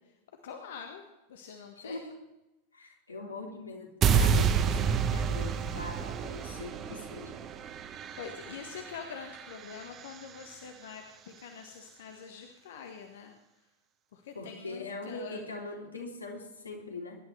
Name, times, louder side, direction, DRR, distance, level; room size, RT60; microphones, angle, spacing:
voice 1, 0.4-2.0 4.0-4.9 7.9-13.4 14.1-15.4, left 6 dB, 60° left, 4 dB, 1.4 m, -45 dB
voice 2, 1.8-2.1 2.7-3.9 4.1-7.4 14.3-17.2, left 3 dB, 80° left, -1 dB, 3.2 m, -41 dB
sound 1, 4.0-10.2, right 7 dB, 30° right, 1.1 m, -29 dB
22.0 x 11.5 x 3.4 m, 0.97 s
figure-of-eight pair, 90°, 0 cm